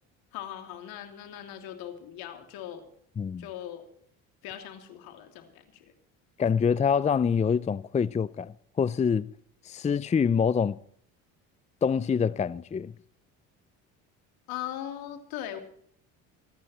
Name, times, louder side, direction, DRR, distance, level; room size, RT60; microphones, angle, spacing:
voice 1, 0.3-2.9 3.4-3.9 4.4-5.9 14.5-15.6, left 11 dB, 75° left, 3.0 m, -39 dB
voice 2, 6.4-9.3 9.6-10.8 11.8-12.9, left 6 dB, 20° left, 0.5 m, -25 dB
26.0 x 9.9 x 4.4 m
supercardioid pair, 85°, 36 cm